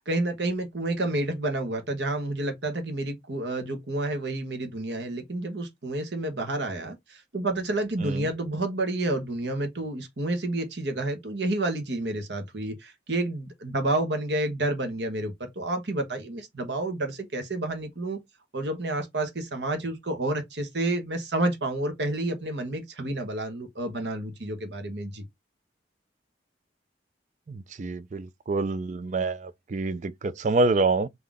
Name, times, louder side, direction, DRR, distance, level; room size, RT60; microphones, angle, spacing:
voice 1, 0.0-18.2 18.5-25.2, right 2 dB, 70° right, 1.1 m, -30 dB
voice 2, 27.5-31.1, right 3 dB, 40° right, 0.4 m, -27 dB
3.8 x 2.8 x 3.5 m
head